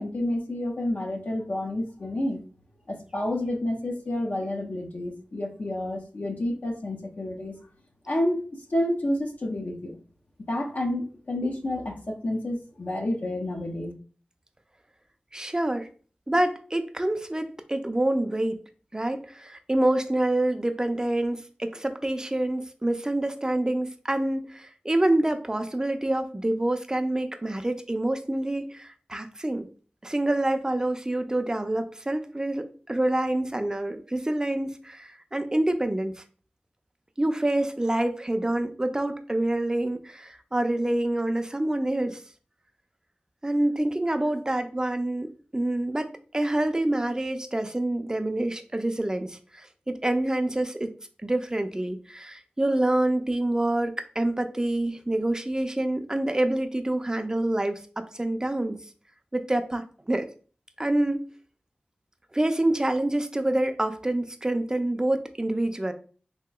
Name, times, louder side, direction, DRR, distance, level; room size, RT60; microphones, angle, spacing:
voice 1, 0.0-2.4 2.9-7.6 8.1-8.4 8.7-10.0 10.5-13.9, left 1 dB, 55° left, 2 dB, 0.5 m, -29 dB
voice 2, 15.3-15.9 16.3-18.6 18.9-29.7 30.0-36.2 37.2-42.2 43.4-50.9 51.2-58.8 59.3-60.3 60.8-61.2 62.3-65.9, right 1 dB, 20° right, 8 dB, 0.4 m, -27 dB
3.1 x 2.8 x 2.2 m, 0.39 s
cardioid pair, 45°, 3 cm